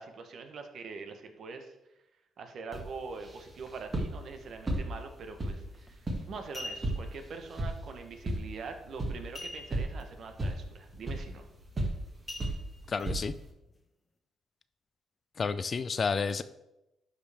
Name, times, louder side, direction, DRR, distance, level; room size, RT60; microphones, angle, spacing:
voice 1, 0.0-1.7 2.4-11.5, right 4 dB, 60° right, 6 dB, 1.1 m, -44 dB
sound 1, 2.7-13.5, right 1 dB, 30° right, 1.9 m, -37 dB
sound 2, 5.7-5.9 6.4-7.1 9.3-10.0 10.4-10.5 10.9-11.2 12.3-13.1 13.6-13.7, left 1 dB, 25° left, 1.3 m, -43 dB
voice 2, 12.9-13.3 15.4-16.4, left 5 dB, 40° left, 13 dB, 0.4 m, -30 dB
11.5 x 5.1 x 3.5 m, 0.92 s
cardioid pair, 90°, 0 cm